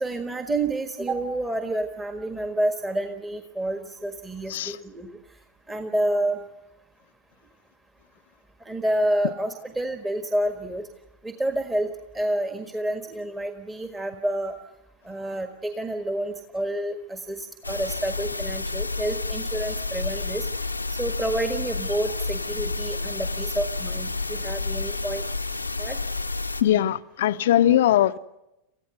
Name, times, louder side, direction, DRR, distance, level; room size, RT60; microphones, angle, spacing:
voice 1, 0.0-5.1 5.7-6.4 8.7-10.9 11.2-11.9 12.1-14.5 15.0-20.5 21.0-25.3 25.8-26.0, right 1 dB, 10° right, 1.6 m, -29 dB
sound 1, 17.6-26.6, left 3 dB, 85° left, 0.9 m, -30 dB
voice 2, 26.6-28.2, left 12 dB, 55° left, 0.7 m, -20 dB
28.5 x 15.5 x 8.0 m
figure-of-eight pair, 90°, 0 cm